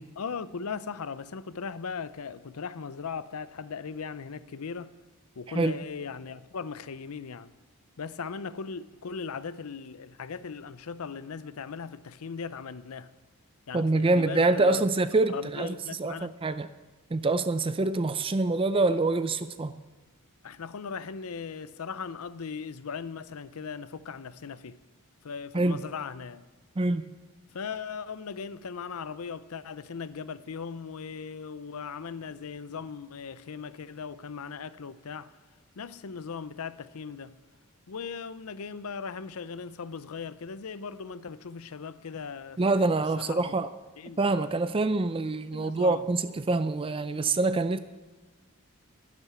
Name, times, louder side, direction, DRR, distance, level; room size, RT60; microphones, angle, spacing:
voice 1, 0.2-4.9 5.4-7.5 8.0-13.1 13.7-14.9 15.3-16.3 20.4-24.8 25.2-26.5 27.5-35.4 35.8-37.4 37.9-42.9 43.2-43.5 44.0-44.2 45.5-46.1, left 5 dB, 70° left, 0.6 m, -38 dB
voice 2, 13.7-16.7 17.1-19.8 25.5-25.8 26.8-27.1 42.6-43.7 44.2-47.8, right 3 dB, 25° right, 0.4 m, -26 dB
11.0 x 10.5 x 5.6 m
head